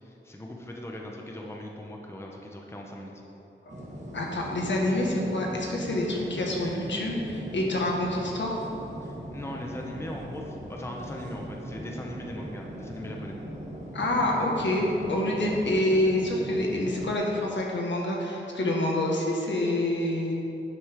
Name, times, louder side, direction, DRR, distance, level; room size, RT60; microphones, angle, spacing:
voice 1, 0.0-3.1 9.0-13.4, left 1 dB, 15° left, 0 dB, 0.9 m, -39 dB
sound 1, 3.7-17.1, right 1 dB, 35° right, 1.6 m, -40 dB
voice 2, 4.1-8.6 13.9-20.3, left 1 dB, 70° left, -2 dB, 1.6 m, -27 dB
11.0 x 8.0 x 3.6 m, 2.9 s
wide cardioid pair, 130°, 20 cm